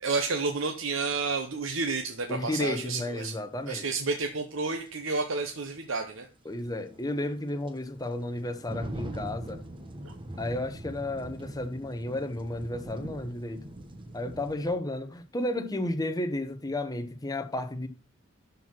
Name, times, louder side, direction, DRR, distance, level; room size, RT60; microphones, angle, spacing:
voice 1, 0.0-3.3 3.7-6.3 10.0-10.1, right 4 dB, 70° right, 1.1 m, -30 dB
sound 1, 1.7-1.8 4.3-4.4 4.9-5.0 6.5-14.7, right 1 dB, 25° right, 1.1 m, -42 dB
voice 2, 2.3-3.9 6.4-9.6 10.4-13.7 14.1-17.9, left 1 dB, 20° left, 0.9 m, -32 dB
12.0 x 4.6 x 6.0 m
head